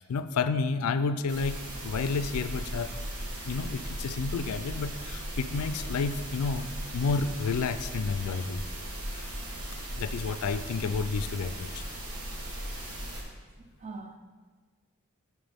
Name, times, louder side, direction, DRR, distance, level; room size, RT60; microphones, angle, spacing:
voice 1, 0.0-2.9 3.5-8.6 9.1-9.2 10.0-11.8, left 4 dB, 85° left, 13 dB, 0.4 m, -30 dB
sound 1, 1.3-13.2, right 1 dB, 85° right, 1.4 m, -37 dB
voice 2, 13.6-14.2, right 3 dB, 30° right, 5 dB, 0.6 m, -43 dB
10.0 x 4.4 x 3.5 m, 1.4 s
head